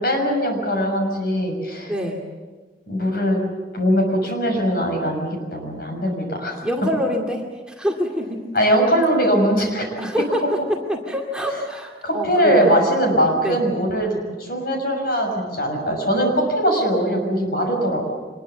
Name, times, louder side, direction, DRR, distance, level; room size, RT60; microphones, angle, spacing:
voice 1, 0.0-1.9 2.9-3.4 3.7-6.6 8.5-9.9 12.0-18.1, equal, 55° left, 3 dB, 6.6 m, -21 dB
voice 2, 1.9-2.2 6.6-8.4 10.0-10.4 10.9-12.8 13.4-13.6, equal, 5° right, 0 dB, 2.3 m, -25 dB
25.5 x 21.5 x 7.2 m, 1.4 s
head